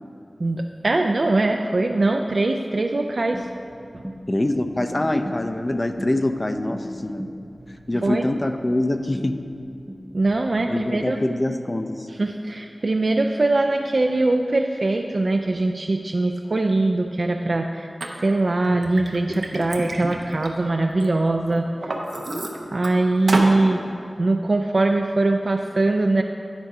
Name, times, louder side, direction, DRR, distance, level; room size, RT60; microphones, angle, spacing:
voice 1, 0.4-3.5 8.0-8.2 10.1-11.2 12.1-17.9 18.1-21.7 22.7-23.8 24.2-26.2, right 2 dB, 60° right, 3 dB, 0.3 m, -22 dB
sound 1, 3.3-11.0, equal, 5° right, 0.6 m, -40 dB
voice 2, 4.3-7.2 7.7-9.4 10.7-12.1, left 1 dB, 35° left, 7 dB, 0.5 m, -24 dB
Liquid, 18.0-18.1 18.6-21.1 21.5-22.9 23.3-23.6, right 2 dB, 85° right, 0.7 m, -29 dB
10.5 x 4.7 x 4.8 m, 2.6 s
wide cardioid pair, 65°, 0 cm